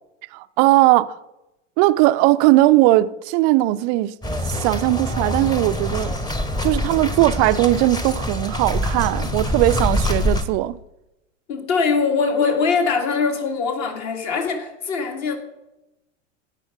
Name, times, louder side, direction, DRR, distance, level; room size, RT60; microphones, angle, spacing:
voice 1, 0.3-1.1 1.8-4.2 4.5-6.1 6.6-10.8, right 17 dB, 35° right, 0.5 m, -18 dB
sound 1, 4.2-10.4, left 1 dB, 10° left, 1.2 m, -25 dB
voice 2, 11.5-15.4, left 5 dB, 45° left, 2.4 m, -22 dB
16.5 x 6.1 x 5.1 m
figure-of-eight pair, 95°, 39 cm